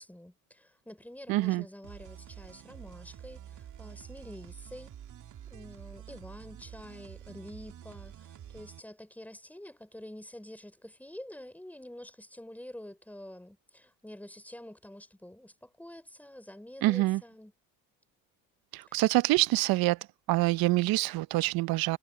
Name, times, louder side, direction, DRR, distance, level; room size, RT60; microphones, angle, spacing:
voice 1, 0.0-4.9 5.5-17.5 18.9-19.0, left 1 dB, 5° left, 4.4 m, -47 dB
voice 2, 1.3-1.6 16.8-17.2 18.7-20.0 20.3-22.0, right 19 dB, 65° right, 0.7 m, -26 dB
sound 1, 1.8-8.8, right 10 dB, 50° right, 2.6 m, -48 dB
supercardioid pair, 90°, 38 cm